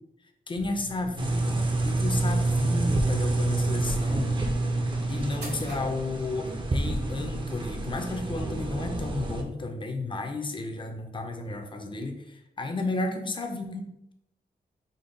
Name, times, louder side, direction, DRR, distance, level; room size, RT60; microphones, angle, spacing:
voice 1, 0.5-4.3 5.1-14.1, left 2 dB, 30° left, 4 dB, 0.5 m, -33 dB
sound 1, 0.5-6.6, right 1 dB, 75° right, 1.1 m, -41 dB
sound 2, 1.2-9.4, right 2 dB, 30° right, 0.5 m, -28 dB
5.2 x 2.2 x 3.8 m, 0.83 s
wide cardioid pair, 135°, 17 cm